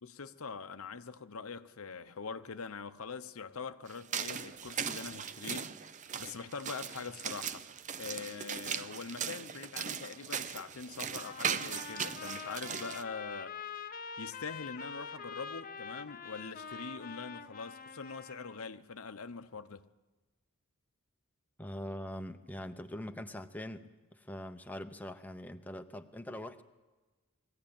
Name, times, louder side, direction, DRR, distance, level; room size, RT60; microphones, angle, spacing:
voice 1, 0.0-5.7 6.2-7.6 8.0-13.6 14.2-19.8, left 5 dB, 80° left, 0.8 m, -43 dB
sound 1, 3.9-13.0, right 7 dB, 35° right, 0.7 m, -39 dB
Trumpet, 11.2-18.6, left 6 dB, 40° left, 0.7 m, -45 dB
voice 2, 21.6-26.6, left 1 dB, 5° left, 0.7 m, -43 dB
21.5 x 15.5 x 8.8 m
head